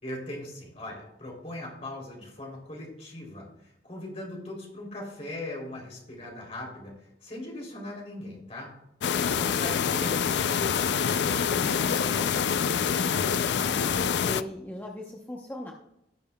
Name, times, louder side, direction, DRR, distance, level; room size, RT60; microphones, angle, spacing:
voice 1, 0.0-8.7 9.2-12.7, left 1 dB, 35° left, -1 dB, 3.1 m, -40 dB
sound 1, 9.0-14.4, left 7 dB, 80° left, 0.4 m, -26 dB
voice 2, 9.4-9.8 13.5-15.7, left 1 dB, 10° left, 0 dB, 0.8 m, -39 dB
17.0 x 6.8 x 2.3 m, 0.85 s
head